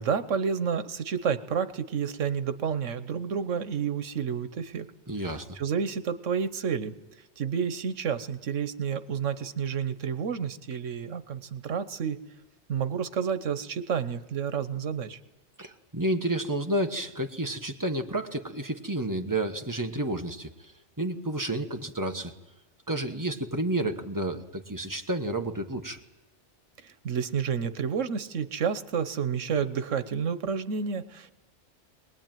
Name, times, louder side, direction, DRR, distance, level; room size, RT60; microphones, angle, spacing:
voice 1, 0.0-4.9 5.5-6.9 7.4-12.2 12.7-15.2 26.8-31.3, right 7 dB, 90° right, 12 dB, 1.4 m, -30 dB
voice 2, 5.1-5.5 15.6-20.7 21.0-22.3 22.9-26.0, right 1 dB, 15° right, 5 dB, 1.3 m, -30 dB
23.5 x 20.0 x 9.2 m, 1.0 s
omnidirectional pair, 1.2 m